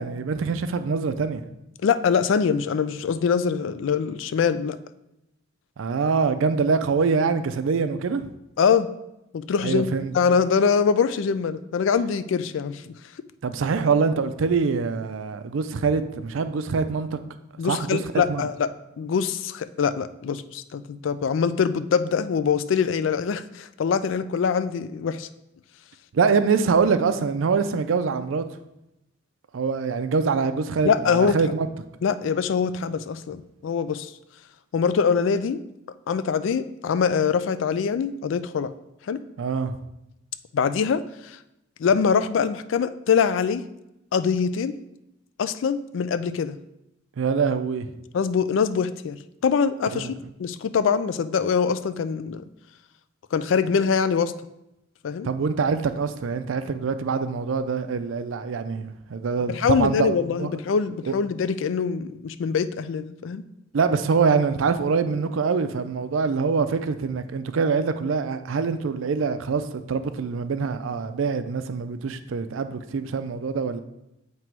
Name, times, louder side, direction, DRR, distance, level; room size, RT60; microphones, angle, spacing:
voice 1, 0.0-1.4 5.8-8.3 9.6-10.1 13.4-17.2 17.6-18.5 26.1-28.4 29.5-31.7 39.4-39.7 47.2-47.9 49.9-50.1 55.2-60.5 61.1-61.2 63.7-73.8, right 5 dB, 75° right, 0.4 m, -24 dB
voice 2, 1.8-4.8 8.6-8.9 9.3-12.8 17.6-18.7 19.0-25.3 30.8-31.4 32.0-34.1 34.7-35.6 36.1-38.7 39.1-39.2 40.5-41.4 41.8-43.6 44.1-44.7 45.4-46.6 48.1-52.5 53.3-54.3 55.0-55.3 59.5-63.4, left 6 dB, 70° left, 0.3 m, -23 dB
7.4 x 3.0 x 4.6 m
head